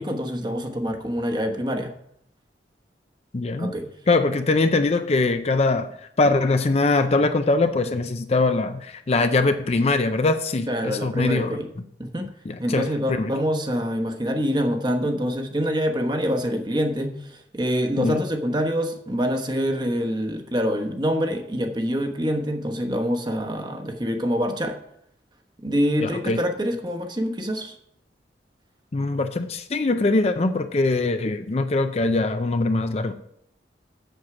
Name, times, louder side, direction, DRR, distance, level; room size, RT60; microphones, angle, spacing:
voice 1, 0.0-1.9 3.6-3.9 10.7-11.7 12.0-12.3 12.6-24.7 25.6-27.7, equal, 25° right, 4 dB, 1.1 m, -25 dB
voice 2, 3.3-3.7 4.1-5.9 6.2-11.6 12.5-13.3 18.0-18.2 26.0-26.4 28.9-33.1, left 3 dB, 35° left, 9 dB, 0.4 m, -22 dB
7.9 x 7.2 x 6.0 m, 0.74 s
head